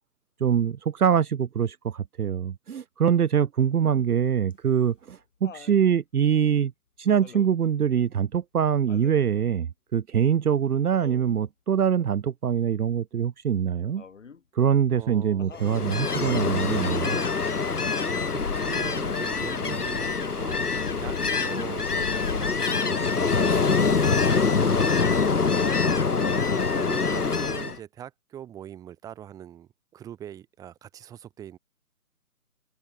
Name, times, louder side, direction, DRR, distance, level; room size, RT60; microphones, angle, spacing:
voice 1, 0.4-6.7 7.0-14.0 14.6-17.2, right 8 dB, 70° right, 0.7 m, -24 dB
Laughter, 4.5-5.8 7.2-7.7 8.9-9.3 10.9-11.4 14.0-14.5 15.4-15.8 18.1-18.6 20.0-20.7 22.0-22.1, left 6 dB, 50° left, 6.4 m, -48 dB
voice 2, 14.9-15.6 18.0-31.6, right 10 dB, 5° right, 3.8 m, -43 dB
Ocean, 15.6-27.8, left 4 dB, 70° left, 2.7 m, -25 dB
open air
figure-of-eight pair, 160°, 47 cm